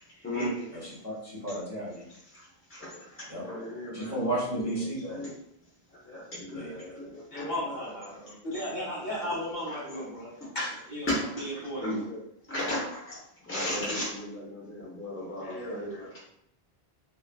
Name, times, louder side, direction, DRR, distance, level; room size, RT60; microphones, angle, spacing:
voice 1, 0.2-0.7 1.4-1.6 7.3-8.2 8.4-11.9 15.4-16.1, equal, 50° left, -7 dB, 1.3 m, -36 dB
voice 2, 0.7-2.1 3.3-3.4 3.9-5.2 6.5-6.8, right 1 dB, 15° right, -8 dB, 0.8 m, -33 dB
voice 3, 3.3-5.3 6.1-7.8 8.1-8.3 9.7-10.0 10.4-10.5 11.1-11.5 11.8-12.2 12.5-13.2 13.4-16.2, left 1 dB, 15° left, -8 dB, 0.6 m, -35 dB
3.0 x 2.4 x 2.2 m, 0.75 s
omnidirectional pair, 1.0 m